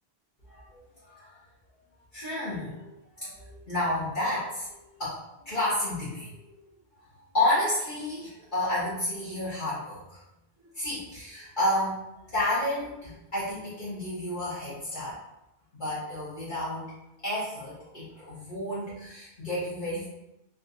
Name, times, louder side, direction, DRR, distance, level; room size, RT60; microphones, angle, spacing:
voice 1, 0.5-1.4 2.1-6.7 7.1-10.2 10.6-15.2 15.7-16.9 17.2-20.1, left 1 dB, 50° left, -12 dB, 1.3 m, -31 dB
3.7 x 2.4 x 2.7 m, 0.90 s
omnidirectional pair, 1.1 m